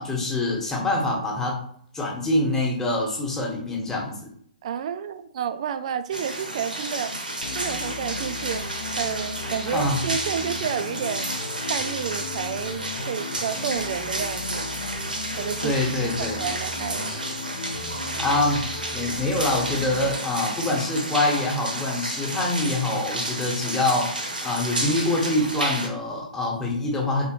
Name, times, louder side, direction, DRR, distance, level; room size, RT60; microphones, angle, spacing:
voice 1, 0.0-1.5 1.9-4.2 9.7-10.0 15.6-16.4 18.2-18.7 18.9-27.3, left 2 dB, 10° left, -2 dB, 1.1 m, -25 dB
voice 2, 4.6-7.1 7.5-8.6 9.0-11.3 11.6-14.7 15.4-15.8 16.2-17.2, right 8 dB, 45° right, 11 dB, 0.4 m, -30 dB
sound 1, 6.1-25.9, right 1 dB, 80° right, 0.9 m, -31 dB
sound 2, 7.4-20.1, left 4 dB, 50° left, 0.6 m, -37 dB
3.9 x 3.6 x 3.0 m, 0.63 s
figure-of-eight pair, 125°, 5 cm